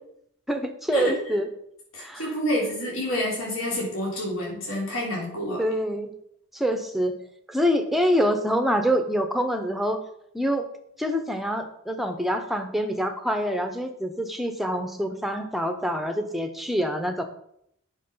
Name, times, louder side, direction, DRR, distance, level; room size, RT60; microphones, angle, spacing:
voice 1, 0.5-1.5 2.0-2.3 5.6-6.1 6.5-7.1 7.5-10.0 10.3-10.7 11.0-17.2, equal, ahead, 6 dB, 0.8 m, -26 dB
voice 2, 1.9-5.6, equal, 70° left, -4 dB, 3.5 m, -28 dB
9.1 x 5.9 x 5.5 m, 0.73 s
head